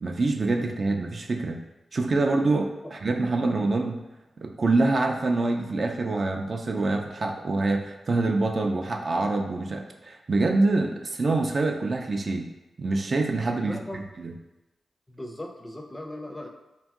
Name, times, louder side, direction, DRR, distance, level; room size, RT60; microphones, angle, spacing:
voice 1, 0.0-1.6 1.9-4.0 4.4-12.4 12.8-14.3, right 2 dB, 55° right, 3 dB, 0.3 m, -25 dB
voice 2, 13.6-14.1 15.1-16.5, left 1 dB, 15° left, 2 dB, 0.4 m, -38 dB
2.9 x 2.5 x 2.3 m, 0.99 s
cardioid pair, 45°, 0 cm